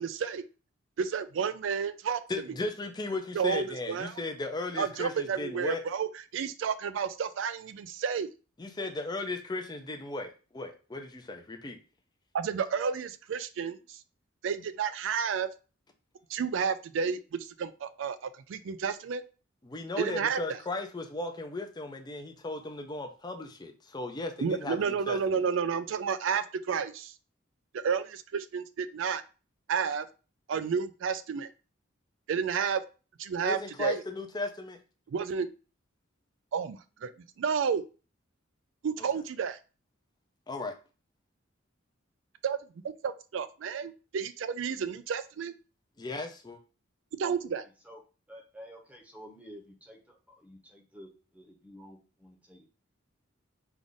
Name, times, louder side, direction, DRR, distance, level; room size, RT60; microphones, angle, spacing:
voice 1, 0.0-0.4 1.0-2.2 3.3-4.2 4.7-8.3 12.3-14.0 14.4-15.5 16.3-19.2 20.0-20.4 24.4-27.1 27.7-29.2 29.7-30.1 30.5-31.5 32.3-32.8 33.2-34.0 35.1-35.5 36.5-37.1 37.4-37.8 38.8-39.6 42.4-42.6 43.0-45.5 47.2-47.6, right 6 dB, 70° right, 13 dB, 0.3 m, -31 dB
voice 2, 2.3-5.8 8.6-11.8 19.6-25.4 33.4-34.8 40.5-40.7 46.0-46.6, left 2 dB, 20° left, 5 dB, 0.5 m, -36 dB
voice 3, 48.3-52.7, equal, 5° right, 1 dB, 0.8 m, -50 dB
3.4 x 2.5 x 3.8 m, 0.35 s
head